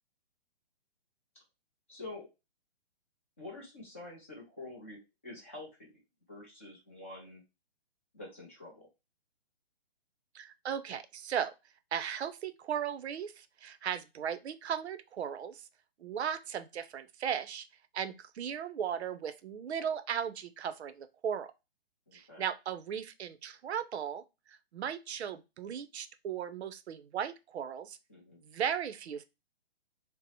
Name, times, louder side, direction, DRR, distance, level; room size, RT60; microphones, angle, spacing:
voice 1, 1.9-2.3 3.4-5.9 6.3-7.4 8.1-8.9 22.1-22.5 28.1-28.4, left 2 dB, 15° left, 0.5 m, -47 dB
voice 2, 10.3-11.5 11.9-15.7 16.0-17.7 17.9-21.5 22.1-24.2 24.5-28.0 28.4-29.2, right 8 dB, 80° right, 0.5 m, -37 dB
2.7 x 2.0 x 4.0 m
hypercardioid pair, 170°, 32 cm